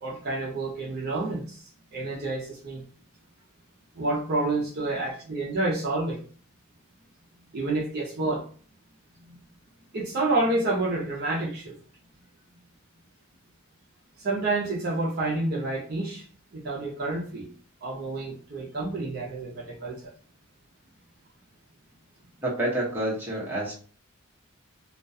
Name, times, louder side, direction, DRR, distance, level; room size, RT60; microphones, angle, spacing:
voice 1, 0.0-2.8 4.0-6.2 7.5-8.4 9.3-9.4 9.9-11.8 14.2-16.3 16.5-17.5 17.8-20.1, right 2 dB, 45° right, 0.5 m, -29 dB
voice 2, 22.4-23.7, right 1 dB, 10° right, 0.8 m, -28 dB
2.3 x 2.2 x 2.6 m
head